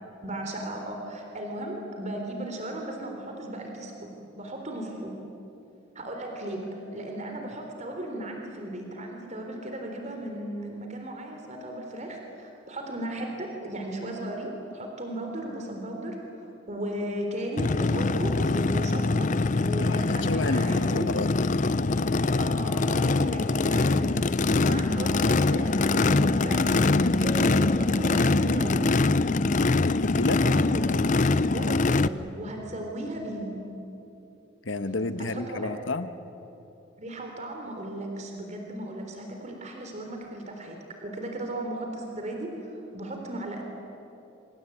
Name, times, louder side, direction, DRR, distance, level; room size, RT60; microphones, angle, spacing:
voice 1, 0.2-4.1 4.4-5.1 6.0-16.2 16.7-21.1 22.4-24.2 24.6-28.9 30.4-31.2 31.5-33.7 35.3-35.7 37.0-40.8 41.0-43.6, right 1 dB, 35° right, 2 dB, 3.7 m, -36 dB
Race car auto racing / Idling / Accelerating revving vroom, 17.6-32.1, left 3 dB, 40° left, 0.6 m, -23 dB
voice 2, 19.8-21.5 24.5-24.8 29.9-30.4 34.6-36.1, left 2 dB, 70° left, 10 dB, 1.4 m, -31 dB
26.0 x 26.0 x 8.7 m, 3.0 s
head